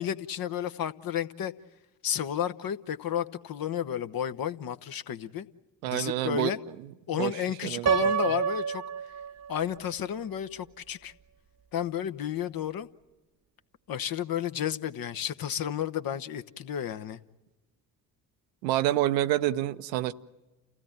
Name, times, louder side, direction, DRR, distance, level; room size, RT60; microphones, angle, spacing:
voice 1, 0.0-1.5 2.0-5.5 5.9-6.6 7.1-8.8 9.5-11.1 11.7-12.9 13.9-17.2, left 9 dB, 45° left, 1.0 m, -32 dB
voice 2, 5.8-6.5 7.2-7.3 7.6-7.9 18.6-20.1, right 14 dB, 75° right, 0.8 m, -27 dB
Piano, 7.9-9.8, right 7 dB, 30° right, 0.8 m, -28 dB
29.5 x 16.5 x 8.9 m
figure-of-eight pair, 45°, 50 cm